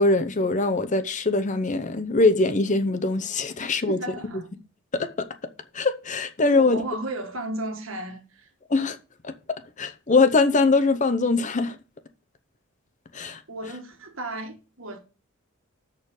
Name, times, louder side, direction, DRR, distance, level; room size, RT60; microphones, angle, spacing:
voice 1, 0.0-4.0 4.9-5.3 5.7-6.8 8.7-9.0 9.2-11.8 13.1-13.4, left 3 dB, 35° left, 0.7 m, -22 dB
voice 2, 3.6-4.5 6.5-8.5 13.5-15.0, right 2 dB, 70° right, 1.7 m, -34 dB
6.6 x 6.5 x 5.4 m
head